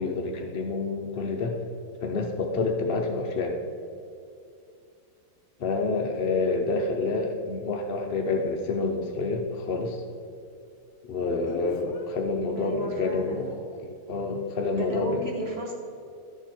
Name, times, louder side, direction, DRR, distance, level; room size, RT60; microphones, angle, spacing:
voice 1, 0.0-1.6 2.0-3.6 5.6-10.0 11.1-15.3, left 3 dB, 60° left, 2 dB, 0.5 m, -28 dB
Speech, 6.1-6.2 11.4-12.1 13.3-13.6, left 5 dB, 80° left, 1.6 m, -42 dB
voice 2, 12.6-13.4 14.7-15.7, equal, 35° right, -2 dB, 1.9 m, -34 dB
12.0 x 7.0 x 4.5 m, 2.5 s
omnidirectional pair, 2.0 m